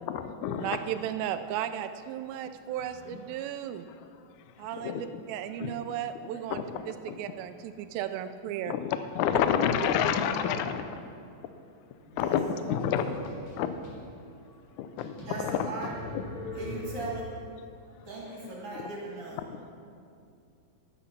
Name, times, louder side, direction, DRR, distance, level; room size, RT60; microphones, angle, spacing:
voice 1, 0.0-0.7 4.8-5.2 5.6-5.7 6.5-6.6 7.1-7.2 8.7-11.0 12.2-12.4 12.7-13.2 13.6-13.7 14.8-15.1 15.4-15.7, left 8 dB, 80° left, 10 dB, 1.8 m, -28 dB
voice 2, 0.6-3.9 4.6-8.7, right 10 dB, 85° right, 9 dB, 2.3 m, -35 dB
voice 3, 12.0-12.8 15.2-15.9 16.5-17.3 18.1-19.4, right 3 dB, 45° right, -4 dB, 2.4 m, -39 dB
sound 1, 12.6-14.0 14.5-14.6 15.0-17.4, left 1 dB, 60° left, 3.9 m, -42 dB
12.0 x 10.0 x 5.9 m, 2.4 s
omnidirectional pair, 4.1 m